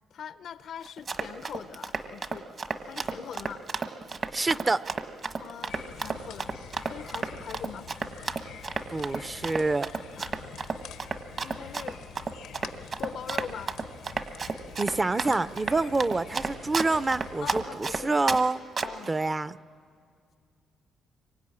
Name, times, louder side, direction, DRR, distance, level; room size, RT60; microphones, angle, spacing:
voice 1, 0.1-2.5 2.8-3.6 5.4-6.5 6.9-7.9 10.2-10.5 11.0-12.0 13.0-13.7 17.4-18.2 18.8-19.1, left 8 dB, 65° left, 0.6 m, -42 dB
Run, 0.9-18.4 18.8-19.1, right 4 dB, 45° right, 1.4 m, -32 dB
voice 2, 4.3-4.8 8.9-9.9 14.8-18.6 19.1-19.6, right 3 dB, 25° right, 0.6 m, -27 dB
sound 1, 5.7-17.7, left 9 dB, 90° left, 1.0 m, -47 dB
26.0 x 23.5 x 9.8 m
cardioid pair, 90°, 0 cm